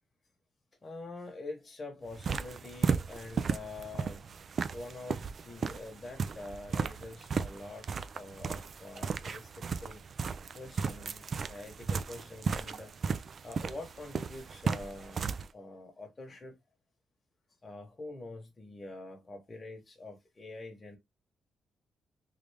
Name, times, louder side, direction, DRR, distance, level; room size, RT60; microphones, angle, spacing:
voice 1, 0.8-4.3 4.7-10.0 10.5-12.9 13.4-15.3 15.5-16.6 17.6-21.0, left 2 dB, 25° left, 1.1 m, -45 dB
sound 1, 2.1-15.5, right 5 dB, 50° right, 0.3 m, -35 dB
3.3 x 2.5 x 3.3 m
cardioid pair, 120°, 0 cm